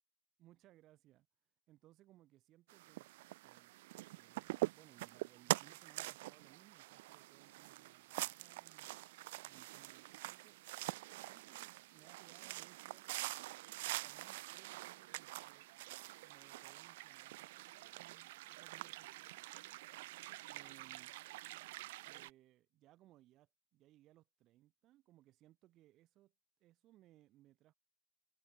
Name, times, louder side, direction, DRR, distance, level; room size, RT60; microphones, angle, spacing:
voice 1, 0.4-1.3 1.7-3.1 3.4-3.8 4.2-9.0 9.4-10.6 11.2-13.4 13.8-15.8 16.2-19.8 20.5-21.2 22.1-26.3 26.6-27.7, right 15 dB, 45° right, 4.5 m, -66 dB
sound 1, 2.7-22.3, right 19 dB, 75° right, 1.1 m, -45 dB
supercardioid pair, 130°, 0 cm